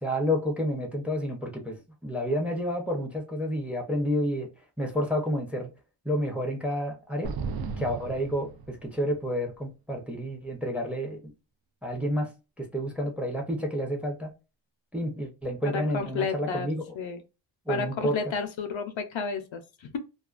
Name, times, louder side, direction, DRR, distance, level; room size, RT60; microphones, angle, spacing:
voice 1, 0.0-1.8 2.0-4.5 4.8-5.7 6.0-7.3 7.8-11.2 11.8-12.3 12.6-14.3 14.9-16.8 17.7-18.2, equal, 5° right, 0.5 m, -30 dB
sound 1, 7.2-9.2, right 4 dB, 50° right, 0.5 m, -35 dB
voice 2, 15.6-16.7 16.9-17.2 17.7-20.0, left 5 dB, 70° left, 0.6 m, -32 dB
2.3 x 2.2 x 2.4 m
wide cardioid pair, 105°, 49 cm